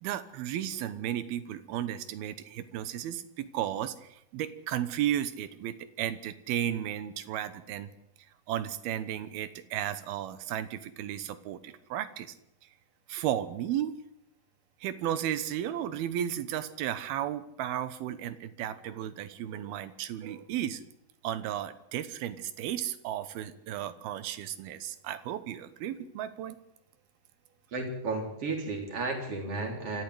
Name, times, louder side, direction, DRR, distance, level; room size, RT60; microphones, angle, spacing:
voice 1, 0.0-7.9 8.5-12.3 13.1-13.9 14.8-20.8 21.2-26.6, right 11 dB, 85° right, 14 dB, 3.0 m, -34 dB
voice 2, 27.7-30.0, right 3 dB, 40° right, 3 dB, 4.5 m, -33 dB
25.5 x 14.0 x 7.9 m, 0.79 s
omnidirectional pair, 4.3 m